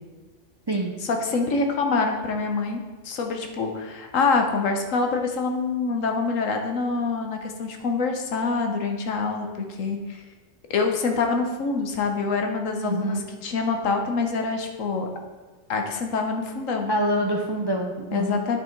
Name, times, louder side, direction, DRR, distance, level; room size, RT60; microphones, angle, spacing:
voice 1, 1.0-10.2 10.7-15.1 15.7-16.9 18.1-18.6, left 4 dB, 85° left, 4 dB, 1.3 m, -25 dB
voice 2, 12.8-13.3 16.9-18.4, right 1 dB, 35° right, 2 dB, 0.4 m, -26 dB
9.6 x 5.1 x 4.5 m, 1.3 s
omnidirectional pair, 1.3 m